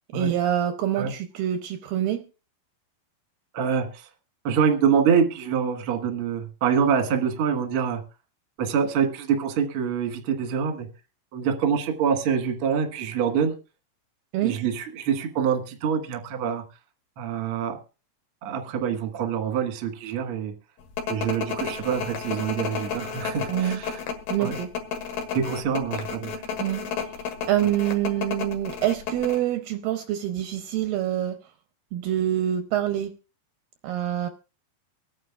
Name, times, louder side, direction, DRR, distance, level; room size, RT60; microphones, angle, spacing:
voice 1, 0.1-2.2 14.3-14.6 23.5-23.8 24.3-24.7 26.6-26.8 27.5-31.4 31.9-33.1 33.8-34.3, right 11 dB, 75° right, 7 dB, 2.2 m, -26 dB
voice 2, 3.5-4.1 4.4-8.0 8.6-10.9 11.3-13.5 14.4-16.6 17.2-17.8 18.4-20.5 21.1-24.0 24.4-24.6 25.3-26.3, right 7 dB, 55° right, 4 dB, 1.7 m, -25 dB
sound 1, 21.0-29.4, left 6 dB, 70° left, 3.1 m, -32 dB
24.5 x 9.4 x 2.4 m, 0.33 s
omnidirectional pair, 4.5 m